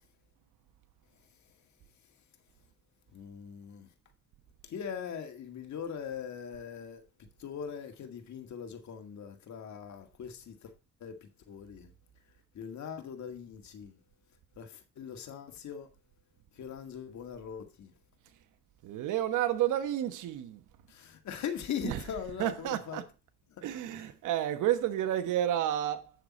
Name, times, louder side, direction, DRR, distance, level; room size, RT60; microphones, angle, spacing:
voice 1, 3.1-3.9 4.6-7.0 7.4-10.7 11.0-11.9 12.5-14.0 14.6-15.9 16.5-17.9 20.9-23.0 23.5-24.1, left 8 dB, 65° left, 2.0 m, -41 dB
voice 2, 18.8-20.6 21.8-23.0 23.6-26.1, right 12 dB, 85° right, 1.2 m, -31 dB
9.2 x 6.7 x 4.3 m
cardioid pair, 90°, 30 cm